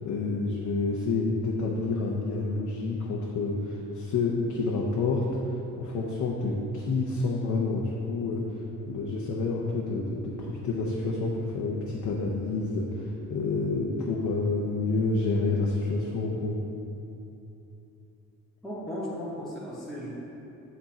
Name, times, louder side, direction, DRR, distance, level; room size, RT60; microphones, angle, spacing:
voice 1, 0.0-16.6, left 3 dB, 75° left, -3 dB, 0.9 m, -29 dB
voice 2, 18.6-20.1, equal, ahead, -7 dB, 1.3 m, -36 dB
8.1 x 4.4 x 4.3 m, 2.8 s
cardioid pair, 90°, 30 cm